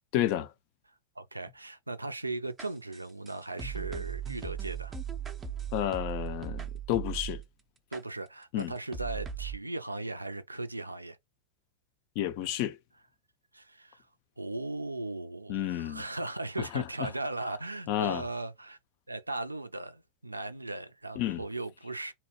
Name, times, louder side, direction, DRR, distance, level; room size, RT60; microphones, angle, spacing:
voice 1, 0.1-0.5 5.7-7.4 8.5-8.7 12.2-12.8 15.5-16.0 16.6-17.1 17.9-18.2 21.2-21.4, left 12 dB, 45° left, 0.4 m, -31 dB
voice 2, 1.2-4.9 7.9-11.2 13.5-14.0 14.4-18.8 19.1-22.1, right 2 dB, 85° right, 0.3 m, -37 dB
sound 1, 2.6-7.4 7.9-8.0 8.6-8.7 8.9-9.6, right 8 dB, 20° right, 0.5 m, -38 dB
2.8 x 2.0 x 3.1 m
figure-of-eight pair, 90°, 0 cm